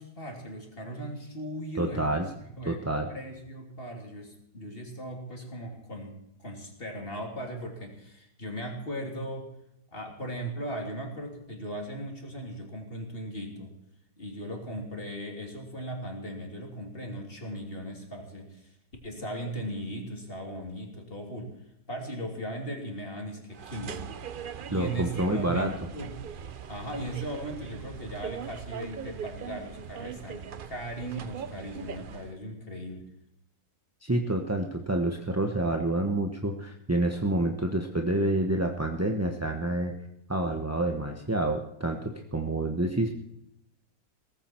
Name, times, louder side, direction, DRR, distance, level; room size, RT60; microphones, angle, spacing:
voice 1, 0.0-2.2 2.5-2.8 3.1-9.5 9.9-13.7 14.2-18.7 19.0-21.5 21.9-24.2 24.7-26.2 26.7-33.1, equal, 30° left, 1 dB, 3.2 m, -38 dB
voice 2, 1.8-2.3 2.7-3.1 24.7-25.7 34.0-39.9 40.3-43.1, right 1 dB, 10° right, 3 dB, 0.8 m, -28 dB
sound 1, 23.5-32.4, right 7 dB, 85° right, 0.4 m, -41 dB
18.0 x 15.0 x 4.5 m, 0.81 s
omnidirectional pair, 1.9 m